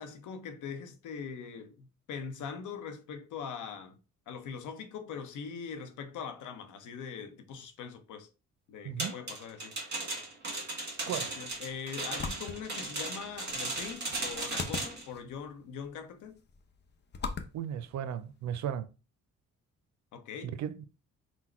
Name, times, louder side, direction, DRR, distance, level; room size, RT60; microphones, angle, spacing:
voice 1, 0.0-4.0 4.3-8.3 8.7-9.8 11.0-16.4 20.1-20.6, left 6 dB, 80° left, 0.8 m, -42 dB
sound 1, 9.0-15.1, right 2 dB, 35° right, 1.5 m, -37 dB
sound 2, 11.5-18.7, left 5 dB, 35° left, 0.7 m, -43 dB
voice 2, 17.5-18.9 20.6-20.8, right 9 dB, 65° right, 0.5 m, -35 dB
4.0 x 2.2 x 4.3 m
cardioid pair, 90°, 30 cm